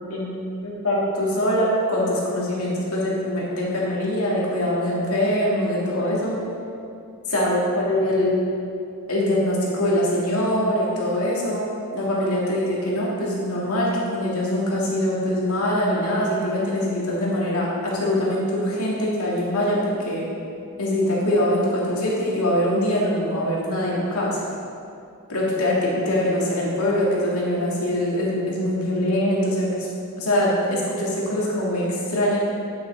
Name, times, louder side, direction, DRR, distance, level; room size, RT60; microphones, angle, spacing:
voice 1, 0.6-6.3 7.3-8.3 9.1-11.7 11.9-20.2 20.8-24.4 25.3-29.9 30.2-32.4, left 1 dB, 80° left, -5 dB, 2.1 m, -23 dB
8.8 x 7.5 x 3.7 m, 2.6 s
head